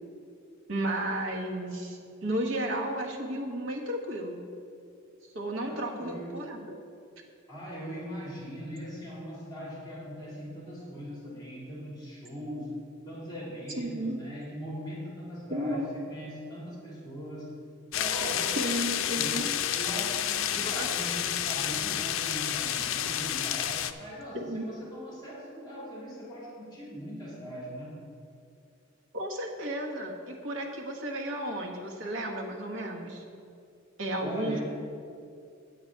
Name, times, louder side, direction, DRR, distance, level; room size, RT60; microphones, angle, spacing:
voice 1, 0.7-4.4 5.3-6.8 13.8-14.2 15.5-15.9 18.6-19.4 20.6-20.9 24.3-24.7 29.1-33.2 34.0-34.6, right 1 dB, 70° right, 0 dB, 1.4 m, -33 dB
voice 2, 5.6-6.4 7.5-12.8 13.0-17.5 17.9-19.4 19.7-27.9 34.2-34.6, equal, 20° left, -5 dB, 2.5 m, -40 dB
sound 1, 17.9-23.9, left 10 dB, 75° left, 0.4 m, -30 dB
8.8 x 8.6 x 4.6 m, 2.4 s
head